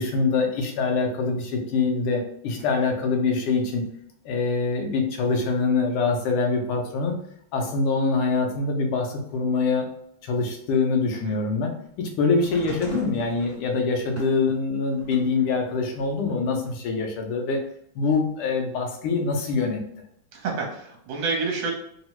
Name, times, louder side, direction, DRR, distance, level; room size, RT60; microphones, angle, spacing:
voice 1, 0.0-3.9 4.2-7.2 7.5-9.9 10.2-17.7 17.9-19.8, left 4 dB, 85° left, 3 dB, 1.6 m, -24 dB
sound 1, 12.3-15.4 15.9-17.0 18.0-18.1, equal, 10° left, 1.0 m, -41 dB
voice 2, 20.3-21.7, right 4 dB, 70° right, 0 dB, 1.5 m, -29 dB
3.8 x 2.0 x 2.9 m, 0.71 s
omnidirectional pair, 2.4 m